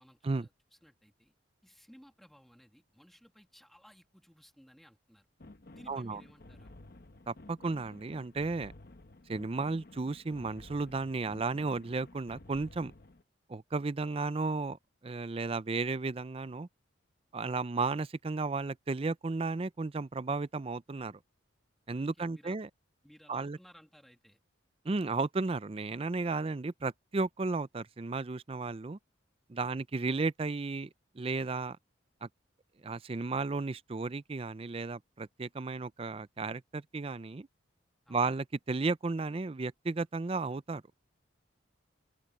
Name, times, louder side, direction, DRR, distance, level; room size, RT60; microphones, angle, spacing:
voice 1, 0.0-1.3 1.6-5.3 5.7-6.7 22.0-22.6 23.0-24.4 29.6-29.8 38.1-38.3, equal, ahead, 2.0 m, -59 dB
sound 1, 5.4-13.2, left 2 dB, 50° left, 1.0 m, -53 dB
voice 2, 5.9-6.2 7.3-8.7 9.3-12.9 13.5-16.7 17.3-21.2 21.9-22.7 23.3-23.6 24.8-29.0 29.5-30.9 31.2-31.8 32.2-32.3 32.8-37.5 38.1-40.8, right 3 dB, 30° right, 0.4 m, -34 dB
head